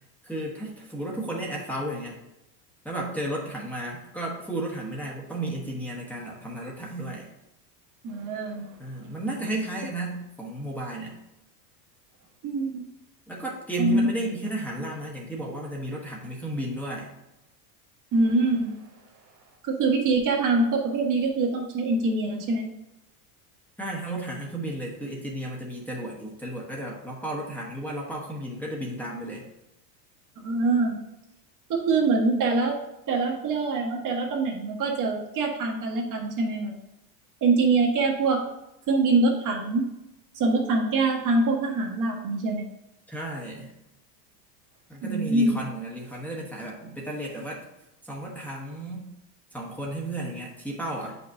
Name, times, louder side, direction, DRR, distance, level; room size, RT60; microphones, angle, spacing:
voice 1, 0.2-2.2 2.8-7.3 8.8-11.2 13.3-17.1 23.8-29.4 43.1-43.7 44.9-47.6 48.0-49.1 49.5-51.2, right 1 dB, 5° left, -4 dB, 1.2 m, -33 dB
voice 2, 8.0-8.7 12.4-12.8 13.8-14.1 18.1-18.7 19.6-22.7 30.4-31.0 31.7-32.8 33.1-36.7 37.4-38.4 38.9-39.8 40.3-42.7 45.0-45.6, right 3 dB, 40° right, 1 dB, 1.4 m, -24 dB
8.2 x 5.4 x 2.7 m, 0.89 s
supercardioid pair, 115°, 48 cm